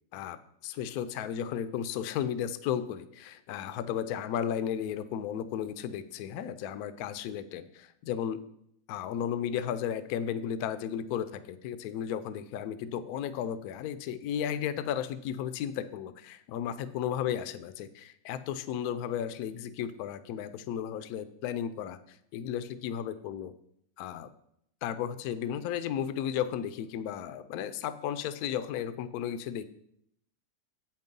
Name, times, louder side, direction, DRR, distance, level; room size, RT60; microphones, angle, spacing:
voice 1, 0.6-8.4 8.9-23.5 24.0-24.3 24.8-29.6, left 9 dB, 75° left, 12 dB, 0.8 m, -34 dB
8.1 x 5.3 x 5.3 m, 0.73 s
omnidirectional pair, 2.1 m